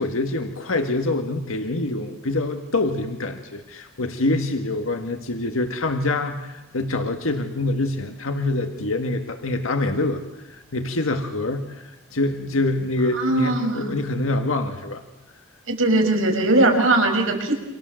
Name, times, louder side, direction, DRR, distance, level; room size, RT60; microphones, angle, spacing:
voice 1, 0.0-15.0, left 2 dB, 85° left, 5 dB, 1.8 m, -25 dB
voice 2, 13.0-13.9 15.7-17.5, right 2 dB, 75° right, 3 dB, 6.2 m, -20 dB
29.5 x 26.5 x 7.7 m, 0.95 s
head